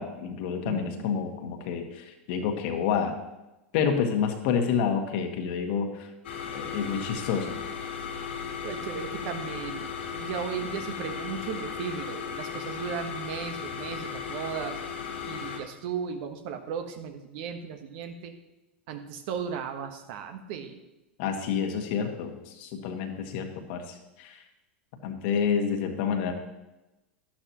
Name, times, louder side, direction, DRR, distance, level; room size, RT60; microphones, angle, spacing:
voice 1, 0.0-3.2 3.7-6.1 6.5-7.6 21.2-24.4 25.0-26.3, left 7 dB, 60° left, 5 dB, 1.6 m, -29 dB
voice 2, 0.6-1.0 8.6-9.8 10.1-14.8 15.3-18.3 18.9-20.8, right 7 dB, 60° right, 6 dB, 1.3 m, -36 dB
sound 1, 6.2-15.6, left 6 dB, 80° left, 2.1 m, -36 dB
12.0 x 11.5 x 3.1 m, 1.0 s
hypercardioid pair, 95°, 6 cm